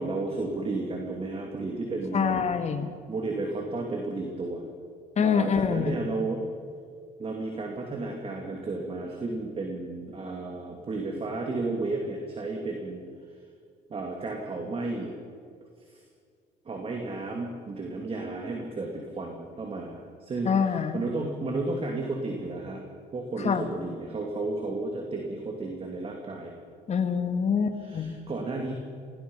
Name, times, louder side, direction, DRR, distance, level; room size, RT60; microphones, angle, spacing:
voice 1, 0.0-2.4 3.1-4.7 5.2-6.4 7.2-13.0 13.9-15.1 15.9-16.0 16.6-22.8 23.1-26.5 27.8-28.7, right 3 dB, 35° right, 1 dB, 3.1 m, -33 dB
voice 2, 2.1-2.9 5.2-6.0 20.4-21.0 23.4-23.7 26.9-28.2, left 6 dB, 40° left, 7 dB, 2.1 m, -25 dB
26.0 x 19.5 x 5.7 m, 2.2 s
cardioid pair, 110°, 17 cm